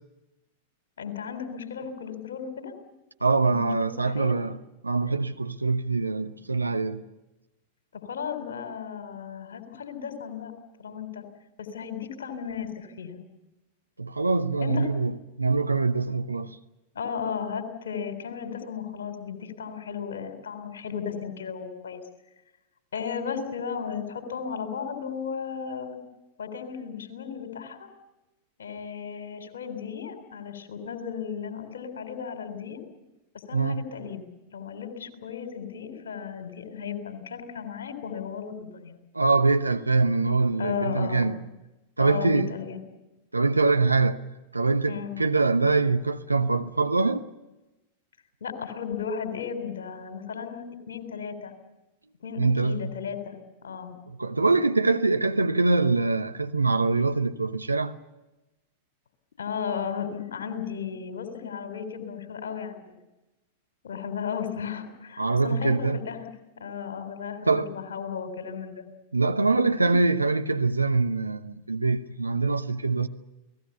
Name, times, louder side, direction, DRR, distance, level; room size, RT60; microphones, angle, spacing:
voice 1, 1.0-2.7 3.4-4.4 7.9-10.5 10.8-11.2 11.6-13.2 14.6-14.9 16.9-22.0 22.9-26.0 26.4-27.9 28.6-32.8 33.5-34.2 34.5-39.0 40.6-41.3 42.0-42.8 44.9-45.2 48.4-51.5 52.2-53.4 53.6-54.0 59.4-63.0 63.8-66.2 66.6-68.9 69.9-70.0, left 7 dB, 65° left, 3.7 m, -35 dB
voice 2, 3.2-4.6 4.8-7.0 14.0-16.5 33.5-33.8 39.1-41.4 42.0-42.5 43.3-44.2 44.5-47.3 52.4-52.9 54.1-57.9 65.2-66.0 67.4-67.7 69.1-73.1, right 3 dB, 80° right, 1.0 m, -24 dB
29.5 x 18.5 x 7.0 m
figure-of-eight pair, 90°, 0 cm